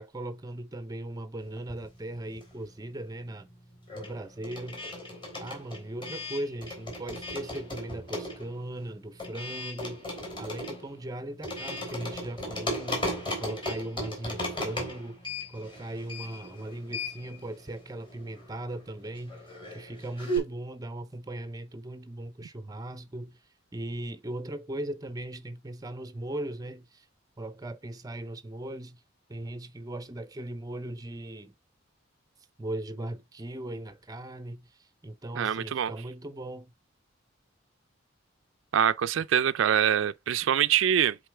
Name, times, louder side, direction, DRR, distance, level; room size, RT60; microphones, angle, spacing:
voice 1, 0.0-3.5 3.9-4.9 5.4-10.1 10.4-15.2 15.5-19.4 19.7-23.4 23.7-27.1 27.4-29.0 29.3-31.5 32.6-36.7, right 1 dB, 20° right, 0.5 m, -38 dB
sound 1, 1.6-2.8 3.1-20.4, equal, 25° left, 3.1 m, -37 dB
voice 2, 35.4-35.9 38.7-41.2, right 9 dB, 75° right, 0.4 m, -24 dB
7.9 x 4.0 x 3.3 m
head